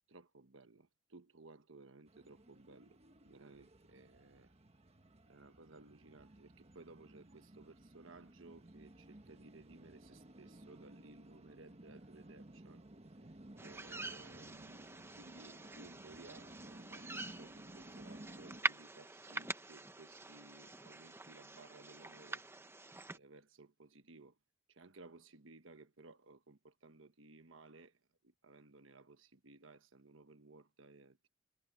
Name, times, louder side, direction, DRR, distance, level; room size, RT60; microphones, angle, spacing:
voice 1, 0.1-4.5 5.3-12.9 13.6-22.4 23.1-24.4 24.7-31.3, right 3 dB, 75° right, 1.3 m, -59 dB
sound 1, 2.1-18.6, right 1 dB, 30° right, 1.4 m, -56 dB
sound 2, 13.6-23.2, right 2 dB, 10° right, 0.8 m, -45 dB
head